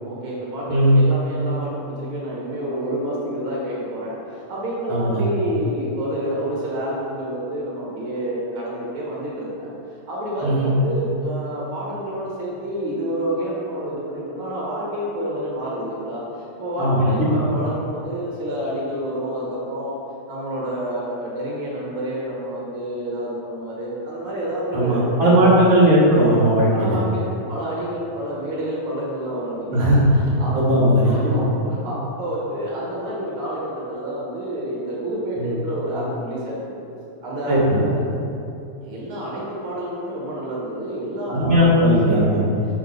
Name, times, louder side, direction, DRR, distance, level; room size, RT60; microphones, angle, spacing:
voice 1, 0.0-9.7 10.1-19.9 20.3-25.1 25.5-25.7 26.7-36.8 37.2-38.0 38.8-42.4, equal, 85° right, -5 dB, 1.1 m, -29 dB
voice 2, 0.7-1.0 4.9-5.2 10.4-10.7 16.8-17.3 24.7-27.0 29.7-30.0 30.5-31.4 35.4-35.5 37.5-37.8 41.3-42.4, equal, 50° right, -8 dB, 1.6 m, -17 dB
5.5 x 4.2 x 5.2 m, 2.7 s
omnidirectional pair, 4.0 m